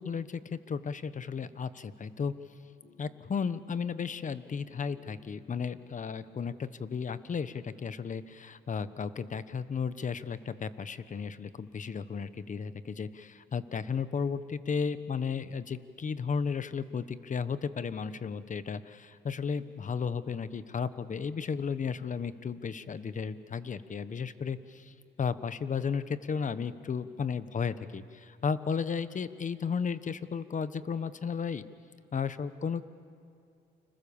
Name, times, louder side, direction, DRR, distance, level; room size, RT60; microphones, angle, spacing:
voice 1, 0.0-2.3 3.0-31.6 32.1-33.0, left 6 dB, 40° left, 13 dB, 1.2 m, -34 dB
sound 1, 2.8-6.1, left 4 dB, 90° left, 6.4 m, -61 dB
29.5 x 26.0 x 7.2 m, 2.4 s
cardioid pair, 90°, 20 cm